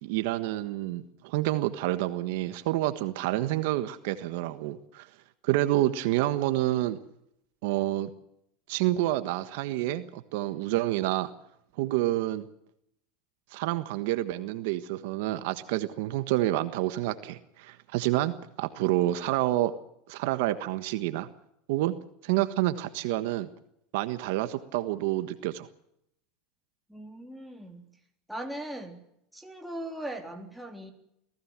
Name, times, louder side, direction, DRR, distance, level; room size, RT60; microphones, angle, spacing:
voice 1, 0.0-5.1 5.4-7.0 7.6-8.1 8.7-11.3 11.8-12.5 13.5-19.7 20.1-21.3 21.7-21.9 22.2-23.5 23.9-25.7, right 15 dB, 70° right, 11 dB, 1.4 m, -28 dB
voice 2, 26.9-27.9 28.3-29.0 29.3-30.9, right 1 dB, ahead, 2 dB, 3.5 m, -39 dB
23.5 x 16.5 x 7.5 m, 0.77 s
supercardioid pair, 125°, 0 cm